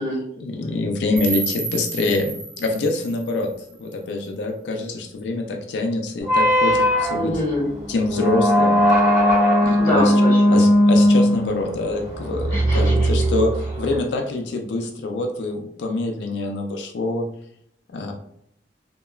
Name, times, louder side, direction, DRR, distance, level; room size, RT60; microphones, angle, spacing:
voice 1, 0.4-3.5 3.8-7.3 7.9-8.8 9.6-17.3 17.9-18.1, left 2 dB, 90° left, 3 dB, 0.4 m, -25 dB
sound 1, 1.2-4.2, right 4 dB, 75° right, 0.8 m, -32 dB
sound 2, 6.2-14.0, equal, 20° right, 1.5 m, -18 dB
voice 2, 7.1-7.7 9.7-10.6 12.5-13.1, left 1 dB, 15° left, -7 dB, 1.4 m, -25 dB
3.0 x 2.1 x 2.2 m, 0.71 s
head